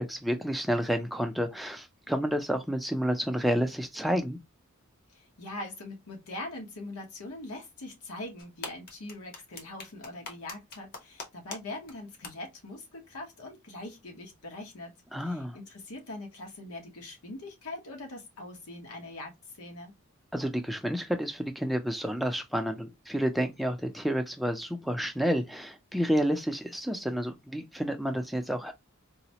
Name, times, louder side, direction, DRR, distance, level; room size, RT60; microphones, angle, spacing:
voice 1, 0.0-4.4 15.1-15.6 20.3-28.7, equal, ahead, 0.4 m, -30 dB
voice 2, 5.1-14.9 15.2-19.9, left 2 dB, 85° left, 1.1 m, -42 dB
sound 1, 8.4-11.6 11.9-12.0 12.2-12.3, left 3 dB, 40° left, 0.8 m, -40 dB
4.0 x 2.1 x 2.8 m
head